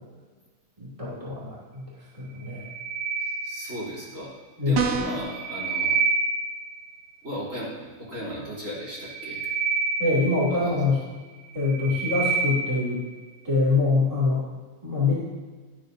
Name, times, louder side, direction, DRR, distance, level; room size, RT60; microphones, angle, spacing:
voice 1, 0.8-1.9 2.2-2.7 4.6-4.9 10.0-11.0 11.5-13.0 13.4-14.4 14.8-15.1, left 3 dB, 15° right, -8 dB, 2.7 m, -24 dB
sound 1, 2.4-4.1 5.1-6.9 8.9-11.0 11.5-13.0, right 4 dB, 60° right, 1.6 m, -28 dB
voice 2, 3.2-4.3 4.6-6.0 7.2-9.5 10.5-10.7, equal, 45° right, -7 dB, 3.5 m, -36 dB
sound 2, 4.7-5.3, right 6 dB, 75° right, 1.6 m, -25 dB
13.0 x 11.5 x 2.7 m, 1.4 s
omnidirectional pair, 1.9 m